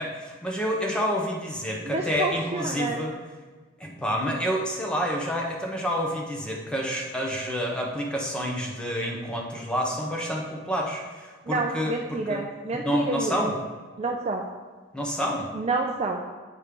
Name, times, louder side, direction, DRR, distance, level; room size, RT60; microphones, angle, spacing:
voice 1, 0.0-3.2 3.8-12.4 12.8-13.5 14.9-15.5, equal, 5° left, -1 dB, 0.8 m, -28 dB
voice 2, 1.8-3.0 11.5-13.5 14.0-14.5 15.5-16.2, right 3 dB, 30° right, 1 dB, 0.3 m, -29 dB
8.3 x 3.2 x 5.1 m, 1.4 s
head